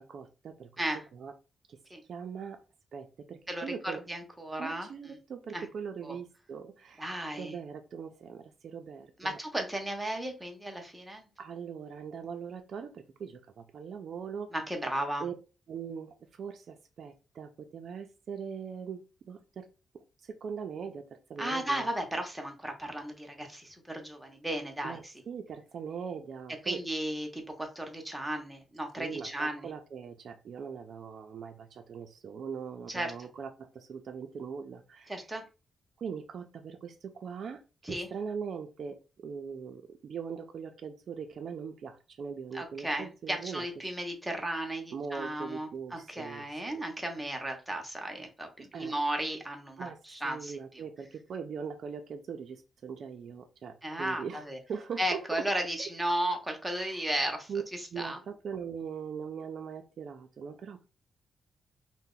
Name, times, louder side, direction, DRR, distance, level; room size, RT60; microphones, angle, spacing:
voice 1, 0.0-0.7 1.1-1.3 1.7-1.8 2.1-2.6 2.9-4.0 4.6-9.4 11.4-14.5 15.2-15.3 15.7-19.7 19.9-21.9 24.8-26.8 29.0-35.1 36.0-43.7 44.9-46.5 48.7-48.9 49.8-50.0 50.2-55.5 56.7-57.0 57.5-57.6 57.9-60.8, right 6 dB, 60° right, 0.4 m, -41 dB
voice 2, 4.1-4.9 5.5-5.7 6.0-6.2 7.0-7.5 9.2-11.3 14.5-15.2 21.4-25.1 26.6-29.7 32.9-33.3 35.1-35.4 37.8-38.1 42.5-50.6 53.8-54.6 55.0-58.2, right 1 dB, 5° right, 0.7 m, -35 dB
2.7 x 2.1 x 3.6 m
wide cardioid pair, 135°, 0 cm